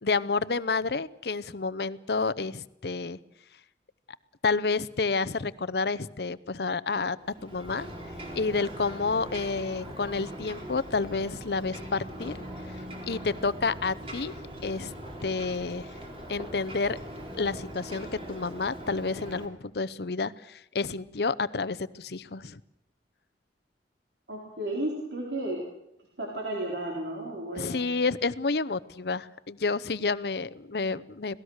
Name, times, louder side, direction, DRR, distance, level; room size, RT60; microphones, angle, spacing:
voice 1, 0.0-3.2 4.4-7.2 7.4-7.9 8.3-12.3 13.1-14.3 14.6-14.9 15.2-15.9 16.3-17.0 17.3-22.6 27.6-31.4, left 4 dB, 65° left, 16 dB, 0.7 m, -29 dB
Ocean, 7.2-19.5, equal, 30° right, 4.0 m, -41 dB
voice 2, 24.3-25.7 26.2-27.9, right 1 dB, 75° right, -2 dB, 4.0 m, -33 dB
26.0 x 18.0 x 6.5 m, 0.84 s
head